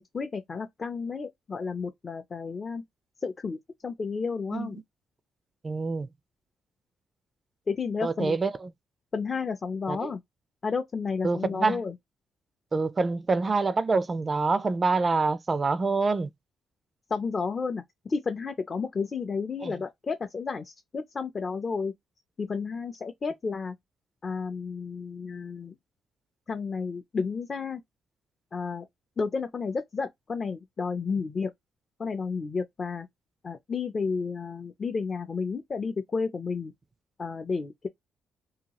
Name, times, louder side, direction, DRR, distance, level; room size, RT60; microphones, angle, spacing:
voice 1, 0.0-2.8 3.2-3.6 3.8-4.8 7.7-8.4 9.1-10.2 10.6-12.0 17.1-21.9 22.4-23.8 24.2-25.7 26.5-27.8 28.5-28.9 29.2-31.5 32.0-33.1 33.4-36.7 37.2-37.9, left 5 dB, 35° left, 0.4 m, -32 dB
voice 2, 5.6-6.1 8.0-8.5 9.9-10.1 11.2-11.8 12.7-16.3 19.6-19.8, right 4 dB, 30° right, 0.3 m, -26 dB
2.8 x 2.3 x 2.8 m
cardioid pair, 90°, 0 cm